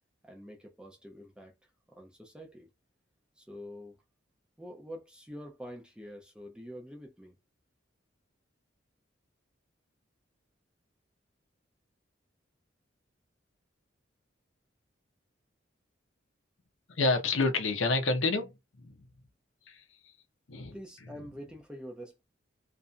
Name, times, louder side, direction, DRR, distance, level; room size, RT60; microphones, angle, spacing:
voice 1, 0.2-2.7 3.4-4.0 4.6-7.4 20.7-22.2, equal, 5° right, 0.6 m, -46 dB
voice 2, 16.9-18.5 18.8-18.9 19.7-19.8 20.5-20.8, left 3 dB, 85° left, 0.7 m, -28 dB
2.7 x 2.5 x 2.2 m
head